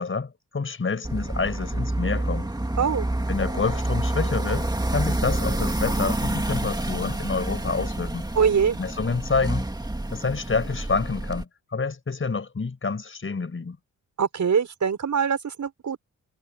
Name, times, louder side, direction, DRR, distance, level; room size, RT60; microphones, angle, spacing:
voice 1, 0.0-2.5 3.3-8.3 8.8-9.7 10.1-13.8, left 4 dB, 40° left, 5.3 m, -28 dB
sound 1, 1.0-11.4, right 1 dB, 10° right, 2.6 m, -28 dB
voice 2, 2.8-3.1 8.4-8.8 14.2-16.0, right 6 dB, 60° right, 5.6 m, -23 dB
wide cardioid pair, 110°, 33 cm